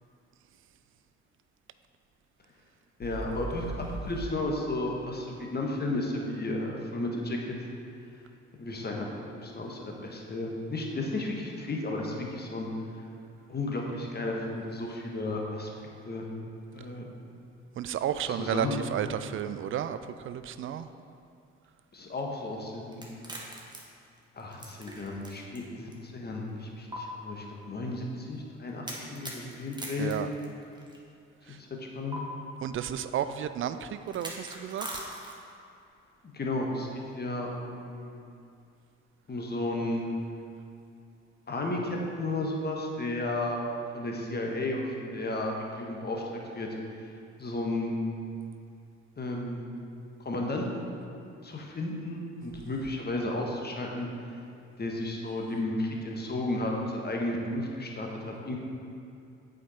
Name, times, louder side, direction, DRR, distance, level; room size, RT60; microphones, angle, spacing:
sound 1, 3.0-4.3, right 1 dB, 80° left, 1.2 m, -37 dB
voice 1, 3.0-3.6 4.0-7.4 8.6-9.1 9.4-12.7 13.5-15.7 16.0-16.3 16.7-17.1 18.2-18.7 21.9-23.1 24.3-30.1 31.5-32.2 36.3-36.9 37.1-38.2 39.3-40.1 41.5-43.6 43.9-46.2 46.5-46.7 47.4-48.0 49.2-49.7 50.2-50.9 51.4-54.1 54.8-58.6, left 2 dB, 25° left, 0 dB, 1.4 m, -33 dB
voice 2, 17.8-20.0 20.3-20.9 30.0-30.3 32.6-34.9, right 9 dB, 35° right, 11 dB, 0.4 m, -32 dB
sound 2, 22.9-25.6 25.9-26.0 26.9-27.0 28.9-31.0 32.1-32.2 34.1-35.6, right 1 dB, 10° right, 1.5 m, -41 dB
8.3 x 5.3 x 4.3 m, 2.5 s
figure-of-eight pair, 45°, 35 cm